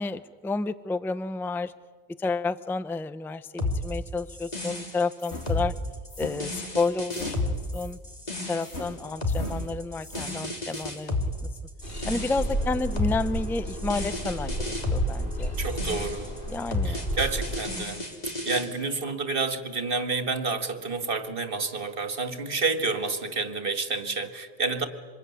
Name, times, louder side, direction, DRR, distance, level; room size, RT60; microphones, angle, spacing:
voice 1, 0.0-1.7 2.2-5.7 6.2-8.0 8.5-11.2 12.1-15.5 16.5-17.1, left 3 dB, 5° left, 14 dB, 0.5 m, -30 dB
sound 1, 3.6-18.7, left 2 dB, 40° left, 3.3 m, -32 dB
sound 2, 5.2-8.0 8.6-11.1, left 2 dB, 85° left, 3.3 m, -41 dB
sound 3, 11.8-17.6, right 1 dB, 55° left, 3.5 m, -32 dB
voice 2, 15.6-16.3 16.8-18.0 18.4-24.9, right 4 dB, 55° right, 8 dB, 2.0 m, -29 dB
25.5 x 21.5 x 9.6 m, 1.5 s
omnidirectional pair, 1.1 m